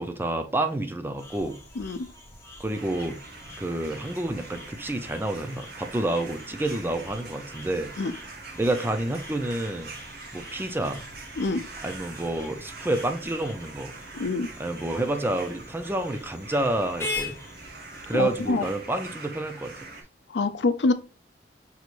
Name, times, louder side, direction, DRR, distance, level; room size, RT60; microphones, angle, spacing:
voice 1, 0.0-1.5 2.6-3.2 3.6-7.9 8.6-9.9 10.3-11.0 11.8-13.9 14.6-17.4 18.1-19.7, right 1 dB, 15° right, 0.5 m, -29 dB
sound 1, 1.2-18.5, left 2 dB, 15° left, 1.1 m, -43 dB
voice 2, 1.8-2.1 8.0-8.1 11.4-11.6 14.1-14.5 18.1-18.6 20.3-20.9, left 3 dB, 70° left, 0.5 m, -25 dB
sound 2, 2.7-20.0, right 3 dB, 60° right, 1.0 m, -43 dB
5.5 x 3.1 x 2.5 m
head